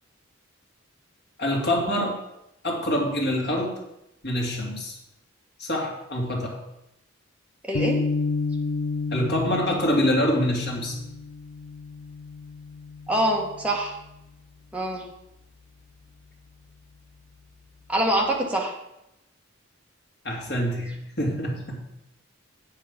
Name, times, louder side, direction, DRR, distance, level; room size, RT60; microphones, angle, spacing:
voice 1, 1.4-2.1 2.6-3.7 4.2-5.0 5.6-6.6 9.1-11.0 20.2-21.8, left 1 dB, 50° left, -1 dB, 2.4 m, -25 dB
voice 2, 7.6-8.0 13.1-13.9 14.7-15.0 17.9-18.7, right 1 dB, 5° right, -1 dB, 1.6 m, -24 dB
sound 1, 7.7-14.2, left 4 dB, 90° left, 0.7 m, -31 dB
8.4 x 7.5 x 5.3 m, 0.87 s
head